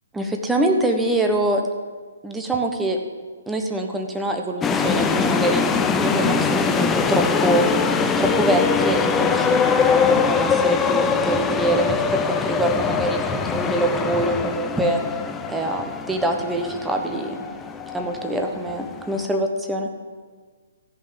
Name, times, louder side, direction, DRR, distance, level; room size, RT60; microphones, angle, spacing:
voice 1, 0.1-1.6 2.2-3.0 3.5-7.7 8.2-9.6 9.9-15.0 15.5-17.4 17.9-19.9, right 1 dB, 5° right, 3 dB, 1.1 m, -24 dB
sound 1, 4.6-19.2, left 5 dB, 15° left, 0.6 m, -22 dB
14.0 x 5.5 x 7.8 m, 1.5 s
figure-of-eight pair, 135°, 0 cm